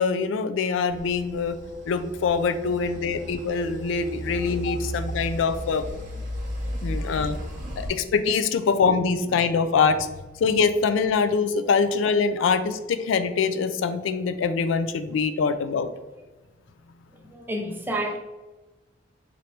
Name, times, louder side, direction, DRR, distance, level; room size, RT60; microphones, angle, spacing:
voice 1, 0.0-1.6 1.9-5.8 6.8-7.4 7.8-10.1 10.4-15.9, left 5 dB, 80° left, 11 dB, 0.3 m, -24 dB
sound 1, 0.9-7.9, equal, 45° right, 0.9 m, -35 dB
voice 2, 4.3-4.8 6.2-6.3 6.7-7.9 11.8-11.9 12.4-12.5 17.1-18.2, right 1 dB, 10° right, 2 dB, 0.5 m, -34 dB
4.4 x 2.6 x 3.2 m, 1.1 s
head